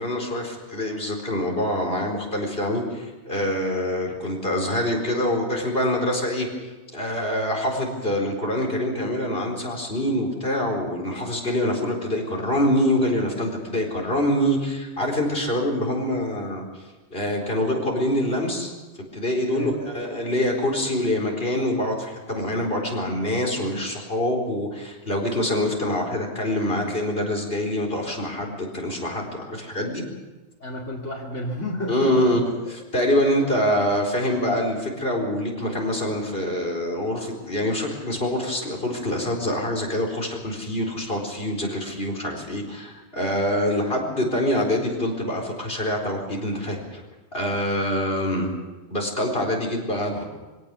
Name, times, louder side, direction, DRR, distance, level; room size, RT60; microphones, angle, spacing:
voice 1, 0.0-16.7 17.1-18.7 19.1-30.0 31.9-32.4 32.9-47.0 47.3-48.5 48.9-50.3, left 1 dB, 50° left, -1 dB, 4.5 m, -25 dB
voice 2, 19.5-19.9 30.6-32.3, left 1 dB, 80° left, -4 dB, 3.0 m, -31 dB
23.5 x 17.5 x 7.0 m, 1.2 s
omnidirectional pair, 1.2 m